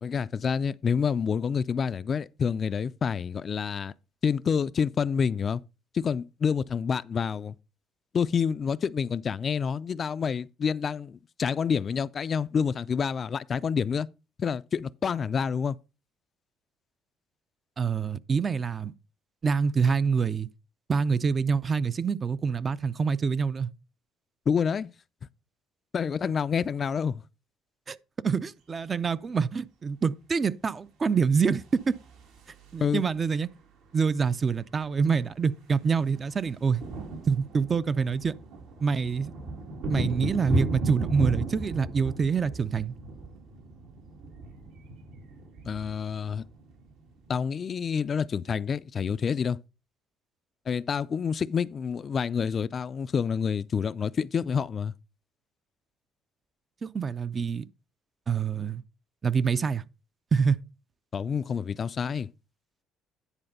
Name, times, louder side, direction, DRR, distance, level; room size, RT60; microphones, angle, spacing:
voice 1, 0.0-3.9 4.2-5.6 5.9-7.5 8.1-14.1 14.4-15.8 24.5-24.9 25.9-27.2 32.8-33.0 45.6-46.5 47.3-49.6 50.7-54.9 61.1-62.3, left 6 dB, 40° left, 0.3 m, -28 dB
voice 2, 17.8-18.9 19.4-20.5 20.9-23.7 27.9-28.0 28.2-31.9 32.7-33.5 33.9-36.8 37.3-38.3 38.8-39.3 39.9-42.9 56.8-57.6 58.3-58.8 59.2-59.8 60.3-60.6, right 5 dB, 35° right, 0.5 m, -26 dB
sound 1, 31.6-33.2 34.5-34.6 34.8-35.0 35.3-47.4, right 2 dB, 75° right, 2.2 m, -35 dB
10.0 x 4.3 x 5.3 m
cardioid pair, 95°, 0 cm